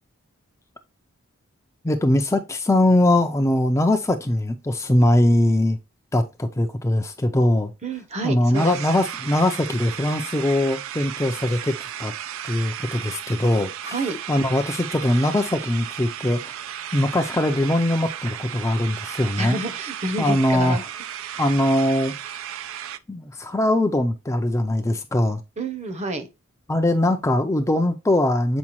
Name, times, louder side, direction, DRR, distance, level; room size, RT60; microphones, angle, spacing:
voice 1, 1.8-5.8 6.1-7.7 8.2-12.1 12.4-14.0 14.3-16.6 16.9-19.6 20.2-20.8 21.4-22.1 23.1-25.4 26.7-28.6, left 1 dB, 15° left, 0.5 m, -21 dB
voice 2, 7.8-8.8 13.8-14.2 19.4-20.8 25.6-26.3, right 2 dB, 30° right, 0.8 m, -29 dB
sound 1, 8.5-23.0, right 10 dB, 65° right, 0.4 m, -34 dB
7.2 x 4.7 x 3.0 m
head